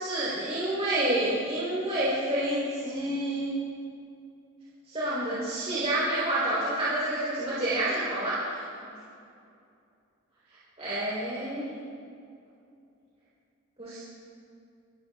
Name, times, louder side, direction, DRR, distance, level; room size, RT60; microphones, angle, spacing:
voice 1, 0.0-3.5 4.9-8.6 10.8-11.6 13.8-14.0, right 1 dB, 35° right, -10 dB, 3.9 m, -28 dB
26.0 x 13.0 x 2.4 m, 2.5 s
head